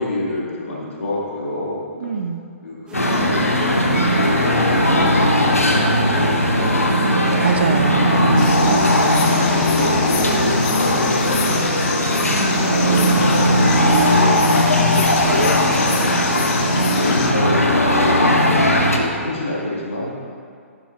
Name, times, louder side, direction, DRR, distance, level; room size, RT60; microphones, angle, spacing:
voice 1, 0.0-2.1 2.6-7.5 8.9-14.5 15.3-15.5 16.7-20.1, left 1 dB, 65° left, -5 dB, 2.0 m, -28 dB
voice 2, 2.0-2.4 7.4-9.1 14.9-16.1, right 6 dB, 50° right, 9 dB, 0.5 m, -26 dB
sound 1, 2.9-19.0, left 1 dB, 80° left, 0.9 m, -17 dB
sound 2, 2.9-14.4, right 1 dB, 10° right, 1.1 m, -31 dB
sound 3, 8.4-17.3, left 7 dB, 30° left, 0.6 m, -29 dB
10.5 x 7.5 x 2.5 m, 2.2 s
figure-of-eight pair, 125°, 8 cm